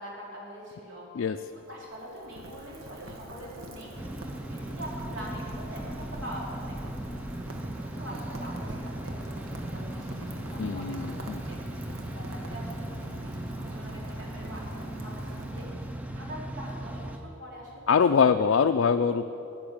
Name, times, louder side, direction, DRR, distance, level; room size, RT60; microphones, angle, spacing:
voice 1, 0.0-1.1 1.5-3.9 4.2-7.1 7.7-11.6 12.0-12.9 13.2-18.0 18.5-18.7, equal, 60° right, -4 dB, 3.3 m, -44 dB
Rain, 1.4-16.2, right 1 dB, 85° right, 1.3 m, -44 dB
sound 1, 4.0-17.2, right 1 dB, 5° right, 0.5 m, -37 dB
voice 2, 10.6-11.4 17.9-19.2, left 6 dB, 65° left, 7 dB, 0.4 m, -23 dB
13.5 x 6.1 x 8.9 m, 3.0 s
head